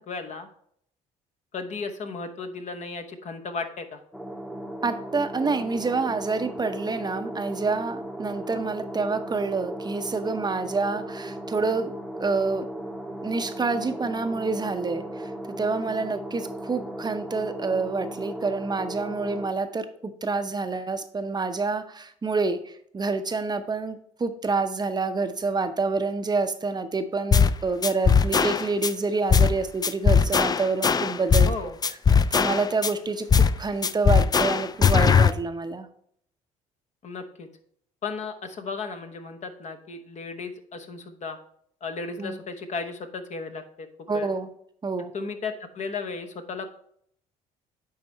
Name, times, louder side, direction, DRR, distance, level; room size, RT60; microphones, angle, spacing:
voice 1, 0.1-0.5 1.5-4.0 31.4-31.8 37.0-37.5 38.0-41.4 41.8-43.9 44.1-44.3 45.1-46.7, left 4 dB, 45° left, 7 dB, 1.0 m, -35 dB
sound 1, 4.1-19.5, right 1 dB, 5° left, 0.9 m, -36 dB
voice 2, 4.8-11.9 12.2-12.7 13.2-31.5 32.3-35.9 42.2-42.4 44.1-44.5 44.8-45.1, right 3 dB, 25° right, 9 dB, 0.7 m, -27 dB
sound 2, 27.3-27.6 27.8-28.9 29.3-29.6 29.8-31.6 31.8-32.9 33.3-33.6 33.8-35.3, left 6 dB, 25° left, 0.4 m, -19 dB
9.6 x 3.5 x 4.3 m, 0.67 s
hypercardioid pair, 60°, 16 cm